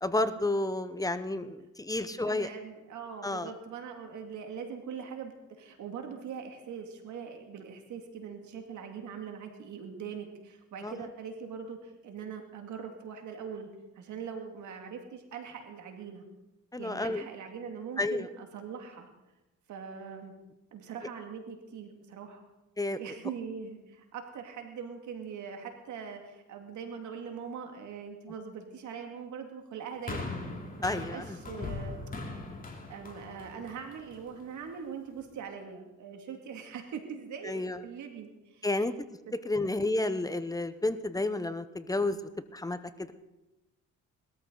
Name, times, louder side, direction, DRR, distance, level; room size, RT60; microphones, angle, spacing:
voice 1, 0.0-2.5 3.2-3.5 10.8-11.1 16.7-17.2 18.0-18.3 22.8-23.0 30.8-31.4 37.4-37.8 38.6-38.9 39.4-42.2 42.5-43.1, left 2 dB, 10° left, 11 dB, 0.8 m, -31 dB
voice 2, 2.3-13.7 14.0-16.2 16.8-19.1 19.7-20.3 20.7-22.4 23.0-30.2 30.8-31.9 32.9-38.9 39.3-39.4, right 6 dB, 75° right, 4 dB, 2.3 m, -42 dB
sound 1, 30.1-34.4 35.2-35.3, left 3 dB, 30° left, 3.0 m, -40 dB
20.5 x 13.5 x 3.9 m, 1.0 s
cardioid pair, 90°, 30 cm